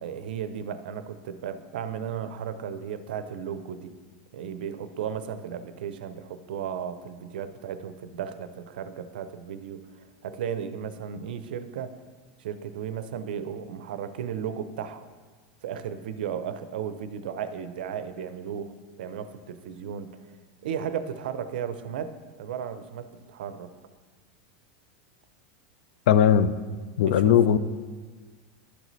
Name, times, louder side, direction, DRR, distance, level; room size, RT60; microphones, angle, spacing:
voice 1, 0.0-3.9 4.3-11.9 12.4-15.1 15.6-18.7 19.0-20.1 20.6-23.7 27.1-27.3, right 8 dB, 80° right, 11 dB, 0.5 m, -35 dB
voice 2, 26.1-26.5 27.0-27.6, left 9 dB, 65° left, 14 dB, 0.3 m, -18 dB
11.0 x 4.0 x 3.1 m, 1.4 s
supercardioid pair, 175°, 5 cm